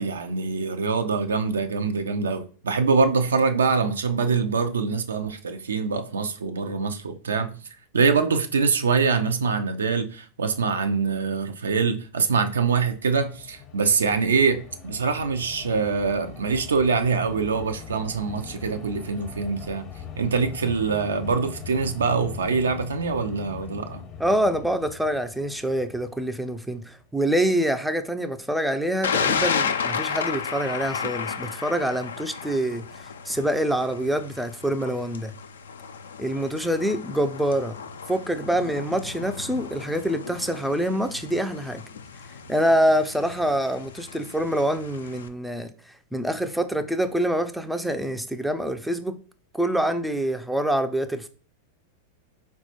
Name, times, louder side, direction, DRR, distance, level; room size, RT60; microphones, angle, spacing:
voice 1, 0.0-7.6 7.9-19.8 20.2-24.0, right 5 dB, 80° right, 0.3 m, -24 dB
sound 1, 12.5-27.0, left 8 dB, 35° left, 0.7 m, -41 dB
voice 2, 24.2-32.9 33.3-35.3 36.2-37.8 38.1-41.8 42.5-45.7 46.1-49.1 49.5-51.3, right 1 dB, ahead, 0.3 m, -25 dB
Thunder, 29.0-45.3, left 6 dB, 75° left, 0.3 m, -33 dB
4.0 x 2.1 x 2.8 m
hypercardioid pair, 95°, 0 cm